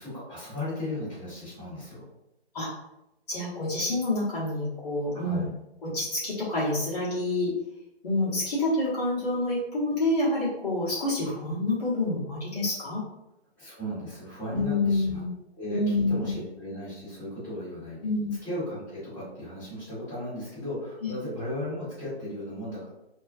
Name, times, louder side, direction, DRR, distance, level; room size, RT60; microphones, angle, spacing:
voice 1, 0.0-2.0 5.1-5.5 13.6-15.2 15.6-18.0 18.4-22.9, left 1 dB, 5° left, -14 dB, 1.1 m, -36 dB
voice 2, 3.3-5.4 5.8-7.5 8.0-13.0 14.5-15.4 15.7-16.3 18.0-18.4 21.0-21.1, left 2 dB, 35° left, -9 dB, 1.1 m, -27 dB
2.3 x 2.3 x 2.5 m, 0.90 s
figure-of-eight pair, 145°, 33 cm